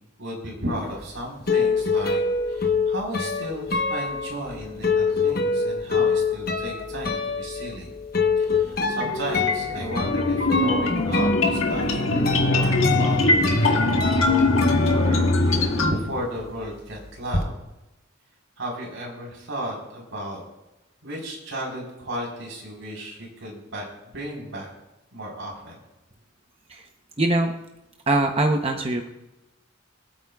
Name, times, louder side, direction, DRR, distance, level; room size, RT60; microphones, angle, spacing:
voice 1, 0.2-7.9 8.4-17.6 18.6-20.4 21.0-23.9 24.1-24.7 25.1-25.8, equal, 75° right, -2 dB, 4.3 m, -34 dB
sound 1, 0.9-15.7 16.0-17.4, left 4 dB, 50° left, 1.1 m, -26 dB
sound 2, 8.8-15.9, left 2 dB, 80° left, 1.6 m, -22 dB
voice 2, 27.2-27.5 28.1-29.1, right 2 dB, 30° right, 3 dB, 0.8 m, -22 dB
25.5 x 8.6 x 2.4 m, 0.97 s
head